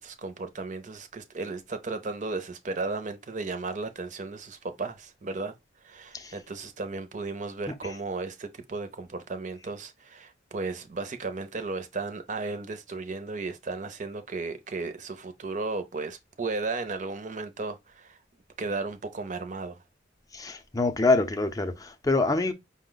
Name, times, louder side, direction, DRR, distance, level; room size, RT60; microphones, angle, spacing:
voice 1, 0.0-5.5 5.8-18.2 18.6-19.8, right 3 dB, 40° right, 0.6 m, -35 dB
voice 2, 20.3-22.5, left 3 dB, 20° left, 0.5 m, -25 dB
5.2 x 2.1 x 3.9 m
head